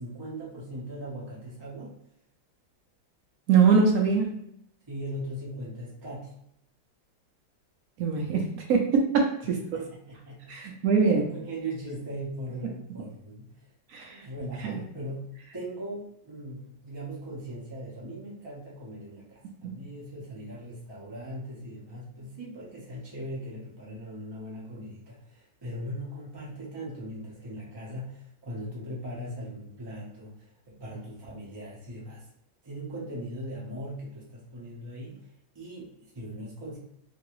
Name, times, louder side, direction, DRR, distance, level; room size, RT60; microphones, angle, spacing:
voice 1, 0.0-2.0 4.9-6.4 9.4-10.7 11.0-13.7 14.1-32.3 32.6-35.3 35.5-36.8, right 1 dB, 35° right, -6 dB, 0.4 m, -39 dB
voice 2, 3.5-4.4 8.0-9.6 10.5-11.2 13.9-14.2 14.6-14.7 19.6-19.8, right 5 dB, 75° right, 1 dB, 0.8 m, -23 dB
3.0 x 2.6 x 3.0 m, 0.77 s
omnidirectional pair, 2.1 m